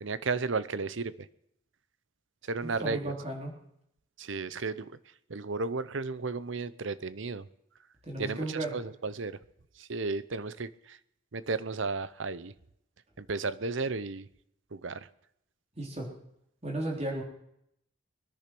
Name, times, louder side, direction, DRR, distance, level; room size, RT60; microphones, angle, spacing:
voice 1, 0.0-1.3 2.4-3.1 4.2-5.0 5.3-7.5 8.2-9.4 9.8-11.0 11.3-12.5 13.2-14.3 14.7-15.1, right 4 dB, 70° right, 16 dB, 0.8 m, -34 dB
voice 2, 2.6-3.5 8.0-8.7 15.8-16.1 16.6-17.2, right 1 dB, 30° right, -1 dB, 3.9 m, -34 dB
22.5 x 10.5 x 6.1 m, 0.75 s
head